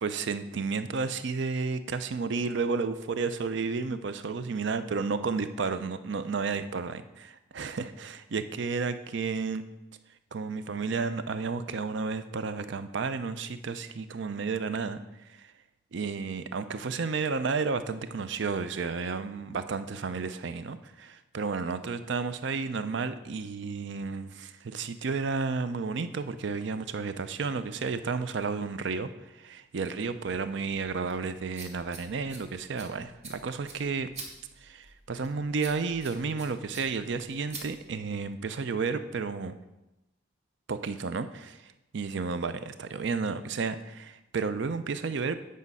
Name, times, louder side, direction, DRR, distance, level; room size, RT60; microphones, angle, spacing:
voice 1, 0.0-9.6 10.3-15.0 15.4-15.5 15.9-29.1 29.4-34.1 34.6-39.5 40.7-45.4, right 4 dB, 60° right, 12 dB, 0.5 m, -32 dB
sound 1, 30.0-38.3, right 3 dB, 35° right, 1.2 m, -48 dB
8.5 x 5.2 x 5.4 m, 0.97 s
head